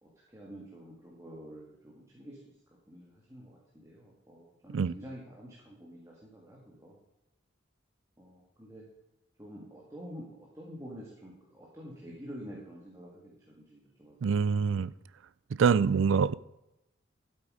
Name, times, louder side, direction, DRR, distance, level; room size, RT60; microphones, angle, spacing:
voice 1, 0.0-2.4 2.9-7.0 8.2-8.9 9.4-14.2 14.4-14.5, equal, 15° right, 2.0 m, -48 dB
voice 2, 14.2-14.9 15.6-16.3, right 6 dB, 75° right, 0.4 m, -25 dB
12.5 x 8.1 x 4.9 m
head